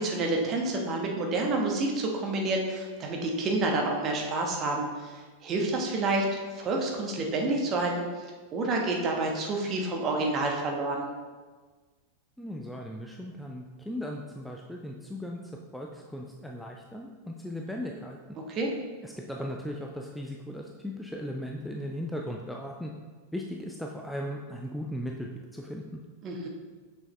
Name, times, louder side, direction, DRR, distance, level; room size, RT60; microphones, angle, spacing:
voice 1, 0.0-8.0 8.5-11.0 18.5-18.7 26.2-26.5, right 2 dB, 30° right, 0 dB, 1.2 m, -29 dB
voice 2, 12.4-15.4 15.7-18.2 19.0-22.9 23.3-26.0, equal, ahead, 0 dB, 0.5 m, -37 dB
6.4 x 6.1 x 3.1 m, 1.4 s
figure-of-eight pair, 90°, 0 cm